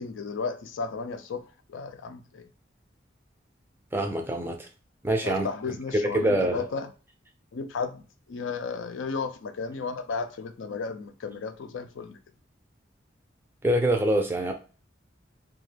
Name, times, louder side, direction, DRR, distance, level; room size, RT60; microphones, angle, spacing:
voice 1, 0.0-1.4 1.7-2.5 5.2-6.9 7.5-12.2, left 4 dB, 85° left, 0.4 m, -34 dB
voice 2, 3.9-4.7 5.0-5.8 6.1-6.6 13.6-14.5, right 1 dB, 10° right, 0.4 m, -25 dB
2.4 x 2.3 x 3.2 m
head